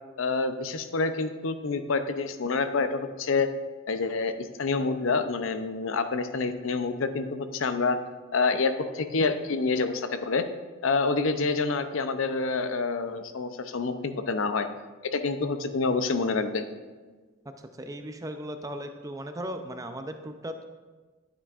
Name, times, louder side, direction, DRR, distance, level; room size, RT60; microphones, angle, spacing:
voice 1, 0.2-3.5 3.9-4.3 4.6-8.0 8.3-10.4 10.8-14.7 15.1-16.6, left 4 dB, 70° left, 9 dB, 0.6 m, -27 dB
voice 2, 17.8-20.6, equal, 15° right, 7 dB, 0.4 m, -37 dB
11.0 x 8.7 x 2.5 m, 1.4 s
head